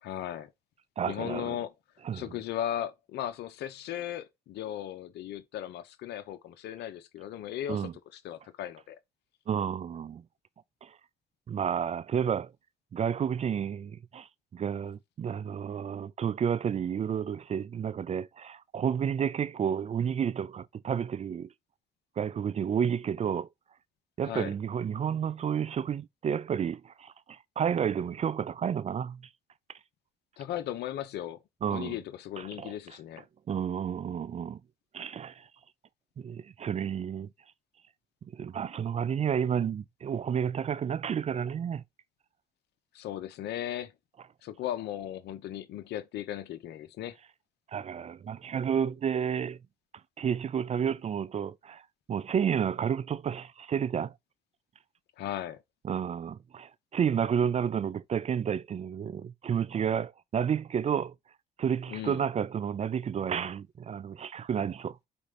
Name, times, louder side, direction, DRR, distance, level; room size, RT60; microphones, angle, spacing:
voice 1, 0.0-0.5 1.0-1.7 2.1-9.0 24.2-24.5 30.4-31.4 31.7-33.2 42.9-43.9 44.4-47.2 55.2-55.6 61.9-62.3, left 11 dB, 85° left, 0.9 m, -37 dB
voice 2, 1.0-1.6 2.0-2.3 7.7-7.9 9.5-10.2 10.8-11.0 11.5-12.5 12.9-21.5 22.2-23.5 24.2-29.3 31.6-32.0 32.4-32.7 33.5-34.6 34.9-35.5 36.2-37.3 38.3-41.8 47.7-49.6 50.2-51.8 52.1-54.1 55.8-61.1 61.6-65.1, right 8 dB, 40° right, 0.4 m, -31 dB
5.1 x 4.3 x 5.2 m
cardioid pair, 85°, 17 cm